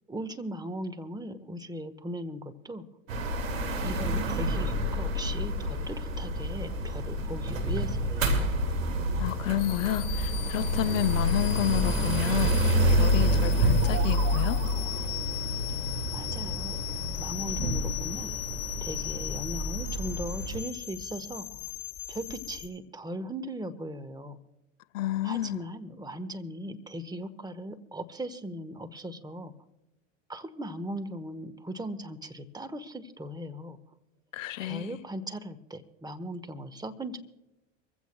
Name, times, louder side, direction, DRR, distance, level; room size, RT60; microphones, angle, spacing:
voice 1, 0.1-2.8 3.8-8.5 16.1-16.8 17.2-18.3 18.8-21.6 22.1-24.4 25.2-29.5 30.3-33.8 34.6-37.2, right 1 dB, 10° right, 1.3 m, -38 dB
sound 1, 3.1-20.6, equal, 85° right, 2.4 m, -28 dB
voice 2, 9.2-14.6 24.9-25.6 34.3-35.0, left 14 dB, 80° left, 0.6 m, -30 dB
sound 2, 9.6-22.7, left 20 dB, 60° left, 5.5 m, -39 dB
sound 3, 13.4-15.3, right 8 dB, 60° right, 2.9 m, -41 dB
24.5 x 15.5 x 2.3 m
hypercardioid pair, 85°, 39 cm